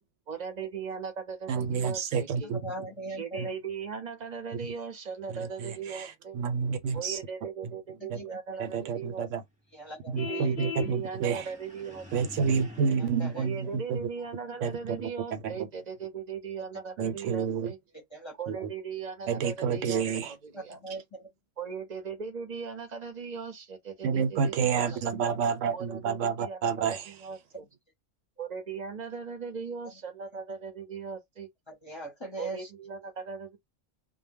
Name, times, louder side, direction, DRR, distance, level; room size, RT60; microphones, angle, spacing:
voice 1, 0.3-2.6 3.2-6.4 6.9-9.3 10.2-12.0 12.5-12.6 13.4-17.8 18.3-20.0 20.4-20.8 21.6-25.1 25.7-26.9 27.2-27.7 28.4-31.5 32.4-33.6, right 6 dB, 45° right, 0.6 m, -38 dB
voice 2, 1.5-2.6 3.4-3.5 5.3-7.2 8.1-8.2 8.6-9.4 10.1-11.5 12.1-14.0 14.6-15.7 17.0-17.7 18.5-18.7 19.3-20.3 24.0-27.1, right 6 dB, 90° right, 1.0 m, -29 dB
voice 3, 2.5-3.5 8.1-8.6 9.7-10.5 13.2-13.5 18.1-18.3 20.5-21.3 31.7-32.7, right 2 dB, 30° left, 0.6 m, -40 dB
Vehicle horn car horn honking, 10.2-10.9, left 9 dB, 60° left, 0.7 m, -36 dB
sound 1, 11.0-14.6, equal, 5° right, 0.8 m, -48 dB
2.1 x 2.1 x 3.4 m
omnidirectional pair, 1.2 m